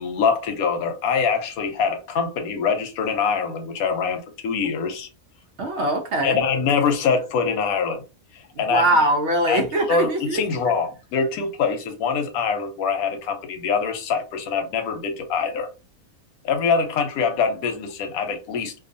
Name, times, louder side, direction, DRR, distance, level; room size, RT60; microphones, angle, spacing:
voice 1, 0.0-5.1 6.2-8.0 8.3-8.8 9.5-15.7 16.4-18.7, left 5 dB, 90° left, 1.1 m, -24 dB
voice 2, 5.6-6.5 8.7-10.4, right 1 dB, 60° right, 0.9 m, -22 dB
2.5 x 2.3 x 2.6 m
omnidirectional pair, 1.5 m